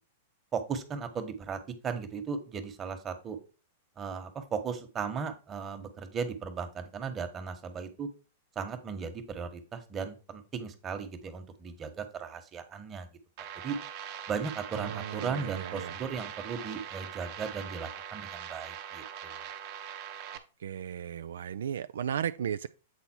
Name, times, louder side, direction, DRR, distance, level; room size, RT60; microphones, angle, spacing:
voice 1, 0.5-3.4 4.0-8.1 8.5-13.1 13.6-13.8 14.3-19.5, right 6 dB, 25° right, 1.3 m, -36 dB
sound 1, 13.4-20.4, right 9 dB, 50° right, 1.0 m, -42 dB
voice 2, 14.7-16.0 20.6-22.7, right 9 dB, 75° right, 0.3 m, -35 dB
8.2 x 4.0 x 4.5 m
hypercardioid pair, 105°, 0 cm